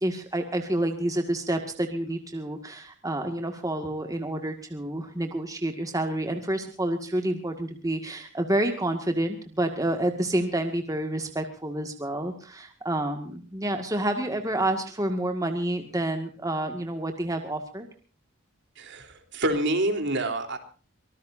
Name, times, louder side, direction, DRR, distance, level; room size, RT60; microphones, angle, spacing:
voice 1, 0.0-17.9, right 1 dB, 15° right, 5 dB, 2.0 m, -29 dB
voice 2, 18.8-20.6, right 1 dB, 55° right, 6 dB, 3.6 m, -27 dB
25.0 x 19.0 x 2.7 m, 0.38 s
head